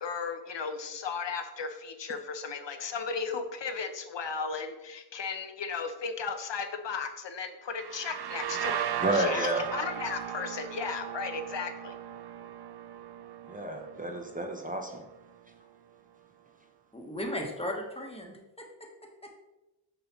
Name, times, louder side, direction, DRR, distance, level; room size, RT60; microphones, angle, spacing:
voice 1, 0.0-12.0, left 5 dB, 70° left, 7 dB, 0.7 m, -35 dB
sound 1, 7.7-15.3, right 10 dB, 60° right, 0.5 m, -37 dB
voice 2, 9.0-9.7 13.5-15.0, right 1 dB, 20° right, 2 dB, 0.7 m, -30 dB
voice 3, 16.9-18.9 19.2-19.3, left 1 dB, 15° left, 1 dB, 1.1 m, -36 dB
6.6 x 5.4 x 3.0 m, 1.0 s
wide cardioid pair, 80°, 45 cm